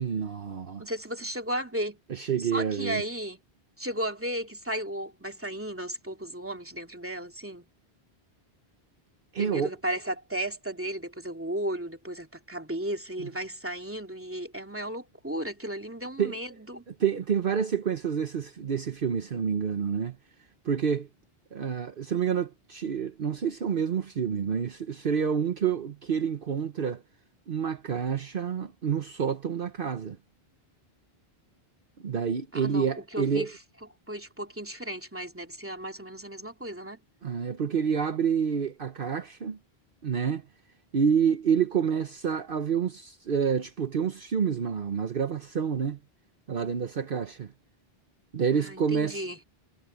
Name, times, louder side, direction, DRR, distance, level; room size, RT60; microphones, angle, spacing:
voice 1, 0.0-0.9 2.1-3.0 9.3-9.7 13.2-13.3 16.2-16.4 16.9-20.2 20.6-21.1 21.5-27.0 27.5-30.2 32.0-33.5 37.2-39.6 40.0-40.5 40.9-46.0 46.5-47.5 48.3-49.2, right 7 dB, 60° right, 1.1 m, -28 dB
voice 2, 0.8-3.4 3.8-7.7 9.4-16.8 32.5-33.5 34.1-37.0 48.5-49.4, right 1 dB, 10° right, 2.7 m, -35 dB
omnidirectional pair, 1.0 m